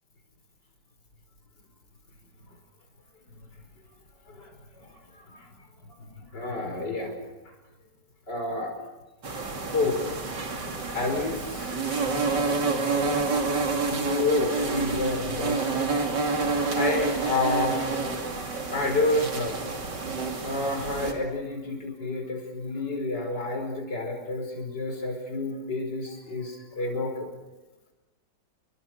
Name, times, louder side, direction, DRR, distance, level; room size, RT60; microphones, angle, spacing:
voice 1, 4.3-5.5 6.1-7.1 7.5-7.6 8.3-8.7 9.6-10.0 10.9-11.8 13.8-15.9 16.7-18.1 18.7-19.6 20.4-27.3, left 2 dB, 70° left, 3 dB, 6.1 m, -29 dB
sound 1, 9.2-21.1, right 4 dB, 75° right, 3.3 m, -28 dB
29.5 x 23.5 x 6.5 m, 1.1 s
omnidirectional pair, 1.9 m